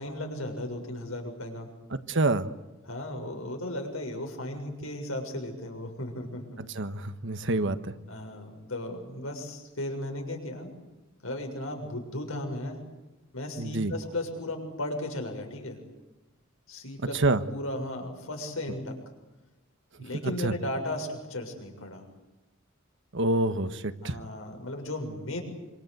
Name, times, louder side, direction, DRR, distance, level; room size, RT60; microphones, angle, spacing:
voice 1, 0.0-1.7 2.8-6.4 8.1-10.7 11.2-12.8 13.3-15.8 16.7-17.2 17.5-18.9 20.0-22.0 24.0-25.4, left 1 dB, 80° left, 3 dB, 6.9 m, -35 dB
voice 2, 1.9-2.5 6.7-7.9 13.6-13.9 17.1-17.4 20.2-20.5 23.1-24.2, right 2 dB, 65° right, 11 dB, 1.4 m, -27 dB
26.0 x 26.0 x 8.1 m, 1.1 s
head